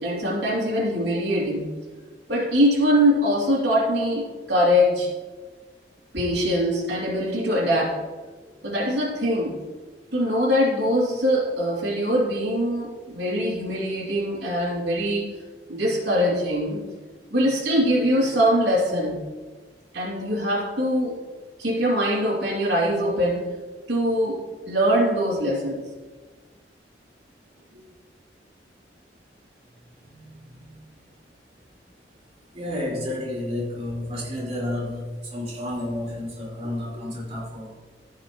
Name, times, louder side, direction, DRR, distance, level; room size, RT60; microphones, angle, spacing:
voice 1, 0.0-1.8 2.3-5.1 6.1-8.0 8.6-9.6 10.1-15.3 15.7-16.8 17.3-19.2 19.9-21.1 21.6-23.5 23.9-25.8 27.7-27.8 30.6-30.7, equal, 85° right, -5 dB, 2.7 m, -23 dB
voice 2, 32.5-37.8, left 1 dB, 35° right, -6 dB, 3.2 m, -31 dB
15.0 x 5.6 x 3.1 m, 1.3 s
head